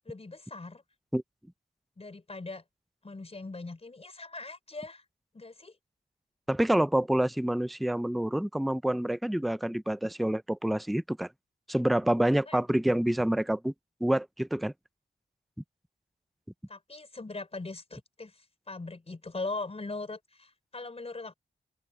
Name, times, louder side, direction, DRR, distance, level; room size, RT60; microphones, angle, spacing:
voice 1, 0.0-0.8 2.0-2.6 3.0-5.0 5.3-5.8 12.5-12.6 16.7-21.3, left 3 dB, 30° left, 4.6 m, -40 dB
voice 2, 6.5-11.3 11.7-13.7 14.0-14.7, right 1 dB, ahead, 0.3 m, -27 dB
open air
wide cardioid pair, 130°, 19 cm